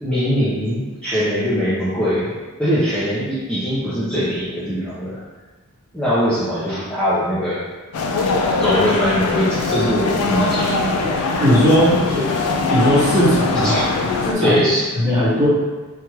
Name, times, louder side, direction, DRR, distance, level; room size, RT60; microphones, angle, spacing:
voice 1, 0.0-2.3 2.6-5.2 5.9-7.7 8.0-8.1 8.6-11.4 13.6-14.0 14.4-14.9, equal, 5° left, -13 dB, 0.6 m, -21 dB
sound 1, 7.9-14.3, left 3 dB, 85° left, 0.4 m, -21 dB
voice 2, 11.3-12.0 12.7-13.7 14.3-14.6 15.0-15.5, equal, 15° right, -10 dB, 1.1 m, -17 dB
3.2 x 2.3 x 2.9 m, 1.3 s
head